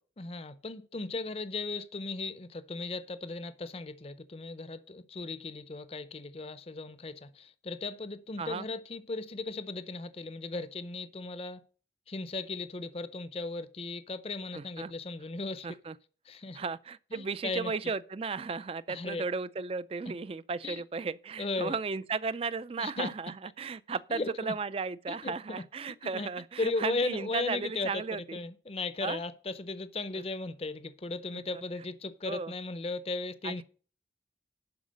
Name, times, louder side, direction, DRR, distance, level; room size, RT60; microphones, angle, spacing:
voice 1, 0.2-11.6 12.1-15.7 16.3-16.6 17.1-17.7 18.9-19.2 20.6-20.8 21.4-21.7 22.8-23.1 24.1-24.5 25.1-25.6 26.1-26.3 26.6-28.0 28.3-33.6, left 3 dB, 35° left, 0.6 m, -36 dB
voice 2, 14.5-14.9 15.6-16.0 16.5-28.4 29.0-29.2 31.5-31.6 32.3-32.5 33.4-33.6, right 4 dB, 35° right, 0.4 m, -35 dB
11.5 x 4.8 x 6.4 m
head